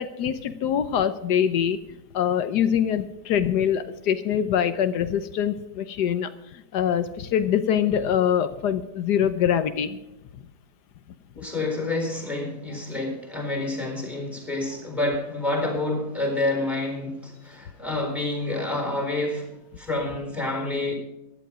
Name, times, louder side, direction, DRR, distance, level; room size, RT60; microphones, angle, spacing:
voice 1, 0.0-1.8 2.1-6.3 6.7-10.0, left 9 dB, 85° left, 11 dB, 1.4 m, -24 dB
voice 2, 11.4-19.5 19.8-20.9, left 2 dB, ahead, 3 dB, 4.2 m, -28 dB
15.5 x 11.5 x 5.0 m, 0.91 s
omnidirectional pair, 1.7 m